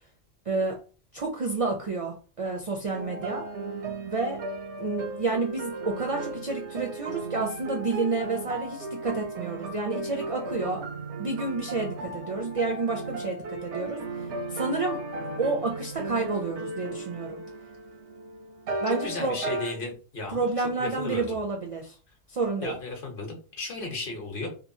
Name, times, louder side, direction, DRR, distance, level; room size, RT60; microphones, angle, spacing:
voice 1, 0.5-0.8 1.1-3.5 4.1-4.4 4.8-10.9 11.2-14.0 14.5-15.0 15.4-17.4 18.8-19.4 20.3-22.0 22.3-22.8, right 3 dB, 55° right, 2 dB, 0.3 m, -30 dB
sound 1, 2.9-19.7, right 3 dB, 85° right, 0.9 m, -35 dB
voice 2, 18.9-21.4 22.6-24.5, left 3 dB, 55° left, 1 dB, 1.0 m, -35 dB
2.9 x 2.2 x 2.6 m, 0.37 s
omnidirectional pair, 1.1 m